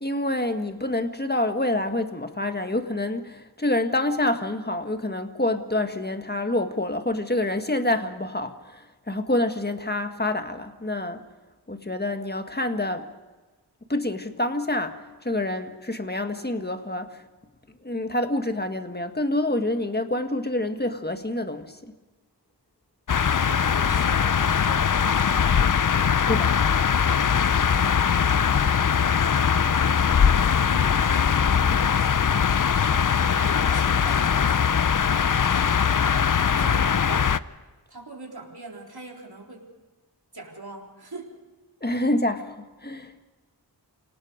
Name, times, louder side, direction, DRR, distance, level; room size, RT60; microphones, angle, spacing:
voice 1, 0.0-11.2 11.7-13.1 13.9-17.2 17.8-21.9 26.3-26.6 41.8-43.3, left 1 dB, 25° left, 7 dB, 1.6 m, -27 dB
sea and wind, 23.1-37.4, left 7 dB, 50° left, 0.6 m, -21 dB
voice 2, 23.2-24.9 27.8-34.8 35.2-35.9 36.4-37.4 37.9-39.7 40.3-41.3, right 3 dB, 60° right, -1 dB, 3.9 m, -42 dB
28.0 x 18.5 x 5.1 m, 1.2 s
wide cardioid pair, 50°, 43 cm